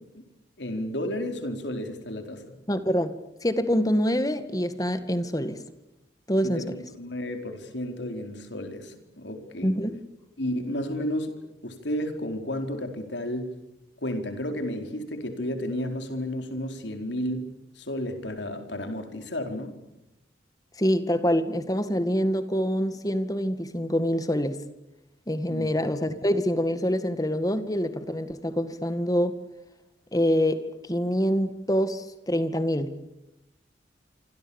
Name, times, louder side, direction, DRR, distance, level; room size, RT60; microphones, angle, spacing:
voice 1, 0.6-2.6 6.4-9.8 10.4-13.6 14.0-19.8 25.5-25.7, left 1 dB, 75° left, 4.5 m, -32 dB
voice 2, 2.7-3.1 3.4-5.6 6.3-6.6 9.6-10.0 20.8-24.6 25.3-29.3 30.1-32.9, equal, 20° left, 1.9 m, -25 dB
27.0 x 26.5 x 7.2 m
head